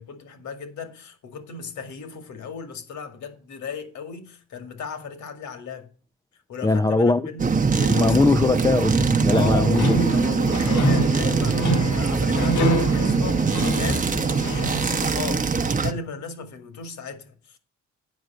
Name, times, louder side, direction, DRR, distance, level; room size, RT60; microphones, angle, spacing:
voice 1, 0.0-5.9 6.5-8.3 9.3-9.8 10.1-17.6, left 6 dB, 70° left, 2.1 m, -36 dB
voice 2, 6.6-7.2 7.9-9.8, left 3 dB, 10° left, 0.4 m, -20 dB
sound 1, 7.4-15.9, right 4 dB, 25° right, 0.9 m, -22 dB
sound 2, 9.7-15.0, equal, 90° left, 2.9 m, -26 dB
9.5 x 5.1 x 7.5 m
cardioid pair, 90°, 30 cm